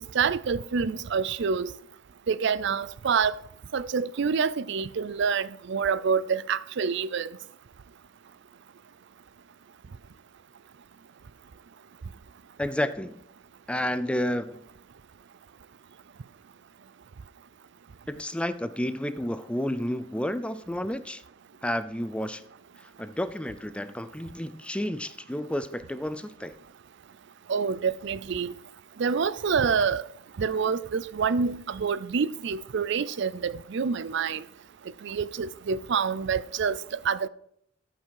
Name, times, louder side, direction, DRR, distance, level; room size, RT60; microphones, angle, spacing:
voice 1, 0.1-1.7 2.3-3.3 3.7-7.3 27.5-28.6 29.0-30.0 30.4-34.4 35.0-36.8 37.0-37.3, right 6 dB, 65° right, 0.5 m, -27 dB
voice 2, 12.6-13.2 13.7-14.6 18.1-21.2 21.6-22.4 23.0-26.5, left 1 dB, 5° left, 0.5 m, -31 dB
13.5 x 5.9 x 4.7 m
head